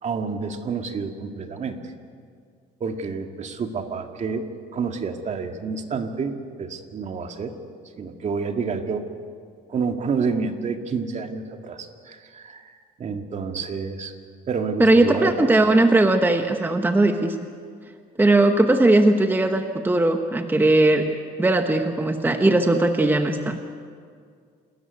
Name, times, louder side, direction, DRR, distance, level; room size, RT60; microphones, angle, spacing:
voice 1, 0.0-1.8 2.8-7.5 8.0-9.0 9.7-14.1 14.5-15.4, right 5 dB, 45° right, 5 dB, 2.0 m, -29 dB
voice 2, 14.8-17.4 18.2-23.6, right 2 dB, 10° right, 6 dB, 1.2 m, -19 dB
27.5 x 13.5 x 9.5 m, 2.1 s
cardioid pair, 110°, 17 cm